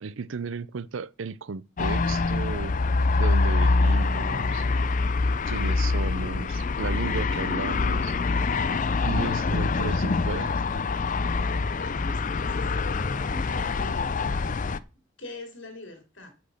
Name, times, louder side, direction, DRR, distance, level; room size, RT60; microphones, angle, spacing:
voice 1, 0.0-2.8 3.2-4.7 5.5-8.2 9.1-10.9, right 5 dB, 65° right, 0.5 m, -34 dB
sound 1, 1.8-14.8, left 3 dB, 40° left, 0.5 m, -25 dB
voice 2, 11.8-12.7 13.3-14.2 15.2-16.3, left 2 dB, 60° left, 2.8 m, -42 dB
8.3 x 6.0 x 6.6 m
head